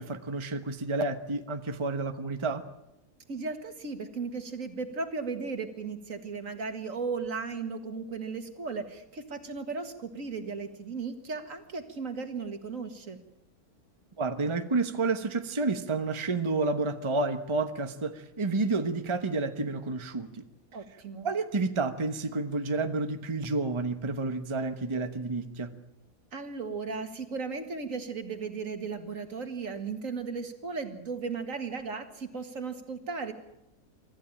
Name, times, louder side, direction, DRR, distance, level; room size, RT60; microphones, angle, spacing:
voice 1, 0.0-2.6 14.2-20.4 21.2-25.7, right 3 dB, 20° right, 8 dB, 1.1 m, -30 dB
voice 2, 3.3-13.2 20.7-21.3 26.3-33.3, right 4 dB, 65° right, 8 dB, 2.2 m, -36 dB
24.5 x 14.0 x 8.8 m, 0.87 s
omnidirectional pair, 1.5 m